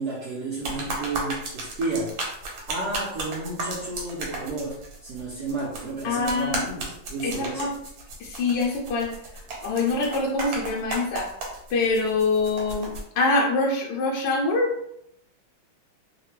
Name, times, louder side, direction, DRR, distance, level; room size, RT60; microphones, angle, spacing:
voice 1, 0.0-2.1 2.7-7.7, right 3 dB, 65° right, -6 dB, 1.1 m, -32 dB
sound 1, 0.6-13.0, right 2 dB, 85° right, 1.6 m, -34 dB
voice 2, 6.0-6.6 7.2-7.7 8.2-11.3 11.7-14.7, left 3 dB, 75° left, -3 dB, 1.2 m, -25 dB
3.3 x 2.1 x 3.0 m, 0.74 s
omnidirectional pair, 2.1 m